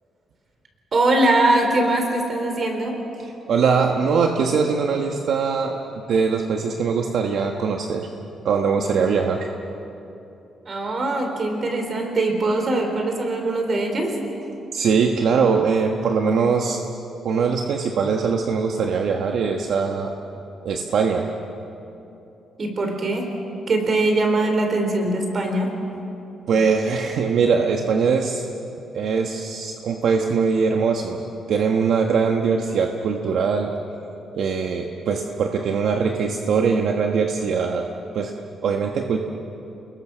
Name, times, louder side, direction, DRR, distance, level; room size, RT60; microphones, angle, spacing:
voice 1, 0.9-3.0 10.7-14.1 22.6-23.3 23.7-25.7, right 2 dB, 35° right, 3 dB, 4.0 m, -21 dB
voice 2, 3.2-5.8 6.1-8.1 8.4-9.5 14.7-16.8 17.2-20.1 20.6-21.3 26.5-28.5 28.9-31.2 31.5-33.7 34.3-37.9 38.1-38.3 38.6-39.2, right 5 dB, 65° right, 2 dB, 1.4 m, -21 dB
29.5 x 21.0 x 6.3 m, 2.8 s
cardioid pair, 140°, 0 cm